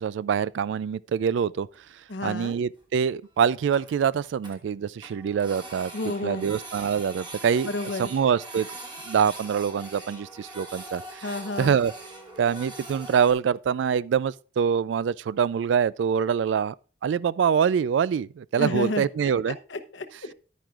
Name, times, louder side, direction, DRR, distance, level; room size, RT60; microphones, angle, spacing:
voice 1, 0.0-1.7 2.2-7.7 8.0-8.7 9.0-11.3 11.6-11.9 12.4-16.8 17.0-19.6, right 7 dB, 80° right, 0.3 m, -25 dB
Printer, 1.7-2.0 2.5-2.6 2.8-2.9 3.2-3.3 3.5-4.6 5.0-13.3, right 2 dB, 25° right, 1.3 m, -42 dB
voice 2, 2.1-2.6 5.9-6.5 7.6-8.1 11.2-11.8 18.6-19.1 19.7-20.3, left 2 dB, 80° left, 0.9 m, -31 dB
10.5 x 9.2 x 2.4 m
head